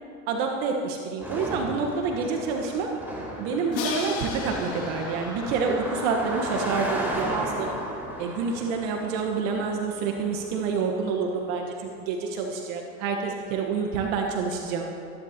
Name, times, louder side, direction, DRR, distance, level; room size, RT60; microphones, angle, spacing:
voice 1, 0.3-2.9 3.4-7.7 8.2-14.9, right 5 dB, 65° right, 2 dB, 1.4 m, -28 dB
Car passing by, 1.2-10.8, right 1 dB, 5° right, 3.3 m, -35 dB
Crash cymbal, 3.7-6.7, left 5 dB, 75° left, 2.5 m, -35 dB
22.0 x 11.0 x 2.9 m, 2.6 s
hypercardioid pair, 95°, 42 cm